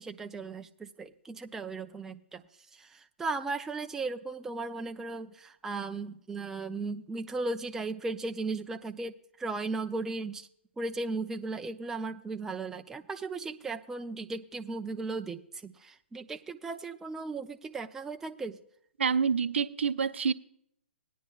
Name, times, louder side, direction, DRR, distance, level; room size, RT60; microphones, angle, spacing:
voice 1, 0.0-2.4 2.7-10.5 10.8-18.6, right 3 dB, 5° right, 0.4 m, -36 dB
voice 2, 19.0-20.3, right 6 dB, 70° right, 0.6 m, -27 dB
18.5 x 10.0 x 2.3 m
figure-of-eight pair, 125°, 6 cm